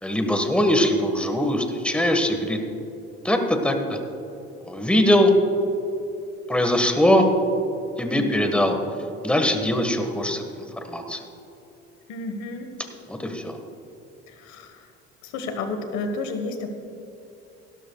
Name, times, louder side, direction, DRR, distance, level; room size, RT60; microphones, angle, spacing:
voice 1, 0.0-2.6 3.2-4.0 4.6-5.3 6.5-7.3 8.0-8.8 9.2-11.2 13.1-13.6, left 1 dB, 5° left, 5 dB, 1.5 m, -21 dB
voice 2, 8.1-8.4 12.1-12.7 14.3-14.8 15.2-16.7, left 3 dB, 70° left, 6 dB, 1.4 m, -31 dB
16.5 x 12.5 x 2.4 m, 2.9 s
supercardioid pair, 75°, 29 cm